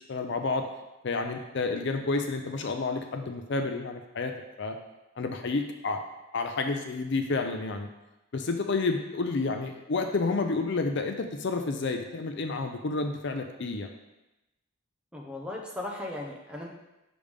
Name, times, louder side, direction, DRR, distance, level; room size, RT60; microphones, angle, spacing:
voice 1, 0.1-0.7 1.0-4.8 5.2-6.0 6.3-7.9 8.3-13.9, left 3 dB, 55° left, 5 dB, 0.5 m, -30 dB
voice 2, 15.1-16.7, left 2 dB, 5° right, -1 dB, 0.8 m, -37 dB
6.8 x 5.1 x 3.5 m, 0.97 s
head